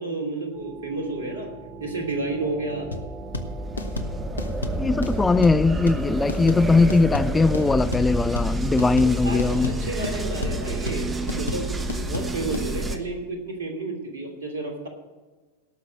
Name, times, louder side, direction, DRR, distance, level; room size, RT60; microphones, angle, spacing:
voice 1, 0.0-1.5 1.8-2.9 8.8-11.7 12.0-14.9, right 2 dB, 65° right, 2.7 m, -31 dB
sound 1, 0.5-13.0, right 1 dB, 15° right, 1.0 m, -29 dB
sound 2, 2.9-12.7, left 3 dB, 75° left, 0.9 m, -32 dB
voice 2, 4.8-9.8, left 3 dB, 10° left, 0.3 m, -20 dB
17.5 x 6.1 x 6.3 m
figure-of-eight pair, 90°, 0 cm